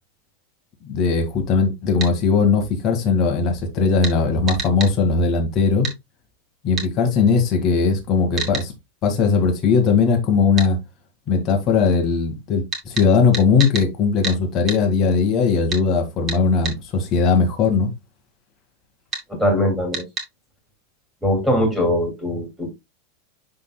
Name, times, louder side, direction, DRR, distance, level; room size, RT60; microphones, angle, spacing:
voice 1, 0.8-5.9 6.6-8.7 9.0-10.8 11.3-17.9, left 4 dB, 30° left, 2.0 m, -19 dB
sound 1, 2.0-2.1 4.0-4.2 4.5-4.9 5.8-6.0 6.8-6.9 8.4-8.7 10.6-10.7 12.7-13.9 14.2-14.4 14.7-14.8 15.7-15.8 16.3-16.8 19.1-19.3 19.9-20.3, right 5 dB, 25° right, 2.3 m, -28 dB
voice 2, 19.3-20.0 21.2-22.7, equal, ahead, 2.9 m, -21 dB
11.0 x 3.9 x 2.4 m
supercardioid pair, 155°, 0 cm